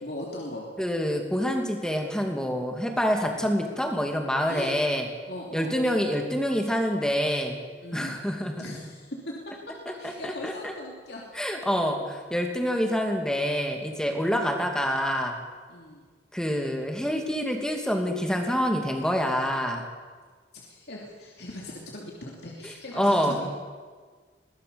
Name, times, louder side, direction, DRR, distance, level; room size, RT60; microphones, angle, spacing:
voice 1, 0.0-0.7 4.5-4.8 5.3-5.7 7.8-8.2 8.6-11.2 15.7-16.0 20.5-23.5, left 1 dB, 60° left, -2 dB, 3.0 m, -39 dB
voice 2, 0.8-5.1 5.5-7.6 7.9-8.5 9.9-10.7 11.3-15.4 16.3-19.8 22.6-23.4, equal, 5° left, 3 dB, 2.4 m, -27 dB
22.5 x 17.5 x 7.0 m, 1.5 s
head